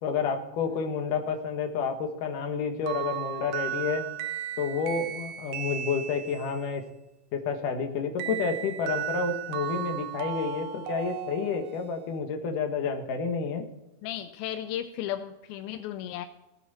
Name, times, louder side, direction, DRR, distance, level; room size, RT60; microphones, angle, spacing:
voice 1, 0.0-4.1 4.6-6.8 7.3-13.6, left 5 dB, 65° left, 5 dB, 2.9 m, -30 dB
sound 1, 2.9-6.6 8.2-12.0, right 11 dB, 80° right, 2.7 m, -35 dB
voice 2, 14.0-16.3, left 11 dB, 85° left, 9 dB, 2.5 m, -35 dB
19.5 x 8.8 x 4.3 m, 0.96 s
omnidirectional pair, 4.3 m